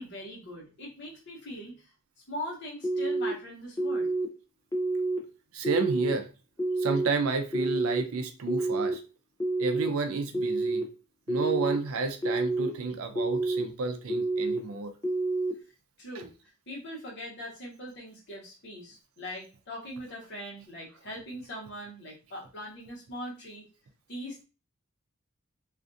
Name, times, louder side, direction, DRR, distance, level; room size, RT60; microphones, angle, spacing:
voice 1, 0.0-1.9 2.3-4.1 16.0-16.3 16.7-23.6 24.1-24.4, left 1 dB, 55° left, 1.0 m, -41 dB
sound 1, 2.8-3.3 3.8-4.3 4.7-5.2 5.6-6.1 6.6-7.1 7.5-8.0 8.5-8.9 9.4-9.9 10.3-10.8 11.3-11.8 12.2-12.7 13.2-13.6 14.1-14.6 15.0-15.5, right 2 dB, 15° left, 0.4 m, -28 dB
voice 2, 5.5-6.3 6.8-9.0 9.6-10.9 11.3-14.9, right 4 dB, 70° right, 0.4 m, -31 dB
2.5 x 2.3 x 2.5 m
head